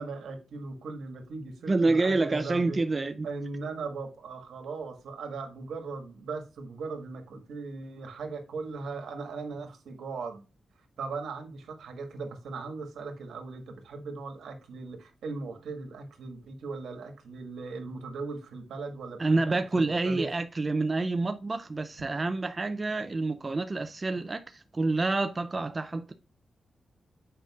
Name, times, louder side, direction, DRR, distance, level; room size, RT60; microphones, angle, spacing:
voice 1, 0.0-2.8 3.2-10.4 11.0-20.3, right 4 dB, 85° right, 1.7 m, -38 dB
voice 2, 1.7-3.3 19.2-26.1, right 3 dB, 30° right, 0.4 m, -28 dB
7.7 x 5.1 x 2.4 m
cardioid pair, 90°, 0 cm